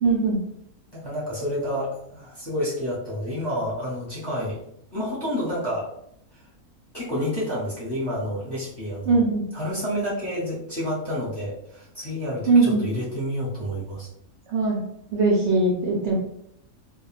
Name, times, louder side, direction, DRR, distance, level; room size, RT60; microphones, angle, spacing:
voice 1, 0.0-0.4 9.1-9.4 12.5-12.8 14.5-14.8 15.1-16.1, right 3 dB, 65° right, -3 dB, 0.7 m, -20 dB
voice 2, 0.9-4.6 4.9-5.9 6.9-9.2 9.5-14.1, equal, 20° left, -8 dB, 0.8 m, -29 dB
2.4 x 2.2 x 3.1 m, 0.72 s
omnidirectional pair, 1.5 m